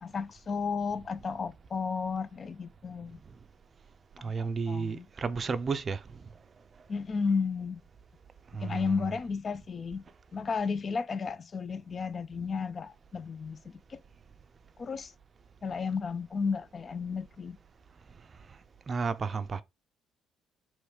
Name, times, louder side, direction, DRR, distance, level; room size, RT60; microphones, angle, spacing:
voice 1, 0.0-3.2 4.2-5.1 6.9-7.8 8.6-10.0 10.3-14.0 14.8-15.1 15.6-17.6, left 5 dB, 40° left, 0.4 m, -33 dB
voice 2, 4.2-6.0 8.5-9.0 18.9-19.6, right 5 dB, 40° right, 0.4 m, -32 dB
3.2 x 3.1 x 4.6 m
cardioid pair, 85°, 0 cm